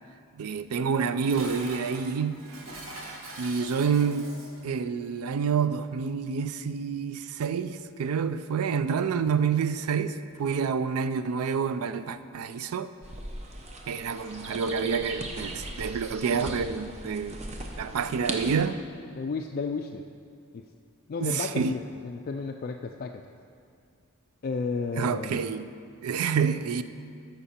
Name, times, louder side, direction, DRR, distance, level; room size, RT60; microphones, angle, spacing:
voice 1, 0.4-2.4 3.4-4.3 4.6-12.9 13.9-17.4 17.8-18.8 21.2-21.7 24.9-25.7 26.0-26.8, right 6 dB, 90° right, 0.4 m, -28 dB
Dishes pots and pans, 0.9-4.7, right 2 dB, 65° right, 1.2 m, -43 dB
sound 1, 13.0-18.5, right 1 dB, 30° right, 0.7 m, -38 dB
voice 2, 19.1-20.0 20.5-20.7 21.1-23.2 24.4-25.4, left 4 dB, 45° left, 0.3 m, -33 dB
13.5 x 5.8 x 4.3 m
head